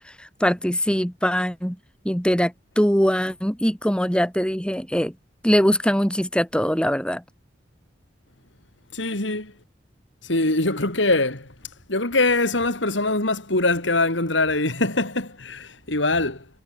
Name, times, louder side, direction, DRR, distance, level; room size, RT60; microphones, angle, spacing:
voice 1, 0.2-1.8 2.0-5.1 5.4-7.2, equal, 5° left, 5.5 m, -22 dB
voice 2, 8.9-9.5 10.2-11.6 11.9-16.5, left 2 dB, 80° left, 5.1 m, -23 dB
head